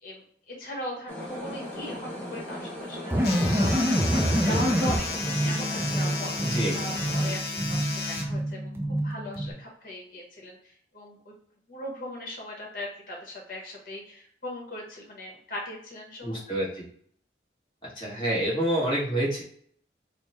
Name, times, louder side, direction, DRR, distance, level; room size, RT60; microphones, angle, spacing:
voice 1, 0.0-11.3 11.7-16.4, equal, 50° left, -1 dB, 1.2 m, -39 dB
sound 1, 1.1-7.4, left 1 dB, 10° left, 0.9 m, -38 dB
sound 2, 3.1-9.5, equal, 15° right, 0.3 m, -27 dB
sound 3, 3.2-8.2, left 4 dB, 65° left, 0.8 m, -34 dB
voice 2, 4.1-4.6 6.4-6.8 16.2-16.8 18.0-19.4, right 1 dB, 25° left, -6 dB, 1.4 m, -28 dB
3.3 x 2.1 x 4.2 m, 0.62 s
head